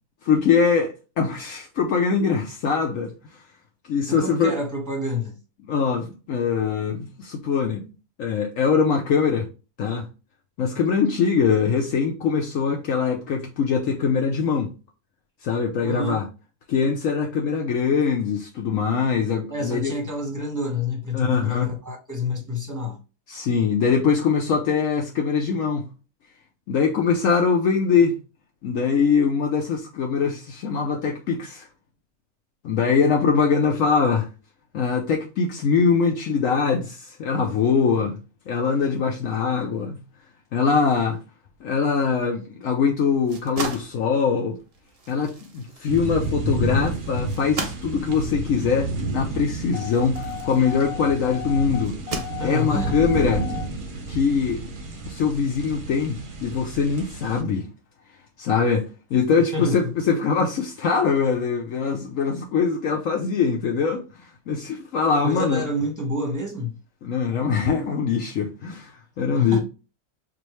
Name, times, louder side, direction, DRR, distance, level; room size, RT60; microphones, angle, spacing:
voice 1, 0.2-3.4 3.9-4.5 5.7-7.9 8.2-9.5 9.8-10.1 10.6-14.7 15.4-16.3 16.7-19.9 21.1-21.7 23.3-25.9 26.7-28.1 28.6-31.7 32.6-34.3 34.7-38.2 38.5-40.0 40.5-41.2 41.6-44.6 45.1-52.0 52.4-53.5 54.1-54.6 55.1-57.7 58.4-65.6 67.0-69.6, left 5 dB, 65° left, 1.0 m, -22 dB
voice 2, 4.1-5.3 15.8-16.2 19.5-23.0 52.4-53.0 59.5-60.0 65.2-66.8 69.3-69.6, left 2 dB, 15° right, 1.0 m, -28 dB
sound 1, 43.1-51.2 51.8-52.9, right 3 dB, 60° right, 0.3 m, -37 dB
sound 2, 45.9-57.4, right 2 dB, 40° right, 0.8 m, -31 dB
sound 3, 49.7-53.7, left 11 dB, 10° left, 1.3 m, -36 dB
4.8 x 2.5 x 3.0 m
omnidirectional pair, 1.6 m